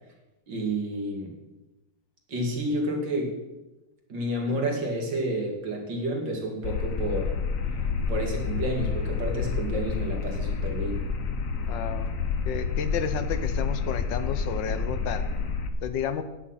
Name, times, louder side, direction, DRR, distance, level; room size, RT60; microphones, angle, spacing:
voice 1, 0.5-1.4 2.3-3.4 4.1-7.4 8.1-11.0, right 1 dB, 70° right, 1 dB, 2.8 m, -30 dB
sound 1, 6.6-15.7, left 5 dB, 55° left, 1.2 m, -29 dB
voice 2, 11.7-12.1 12.5-16.2, left 8 dB, 75° left, 11 dB, 1.4 m, -32 dB
9.8 x 8.7 x 5.7 m, 1.0 s
omnidirectional pair, 2.0 m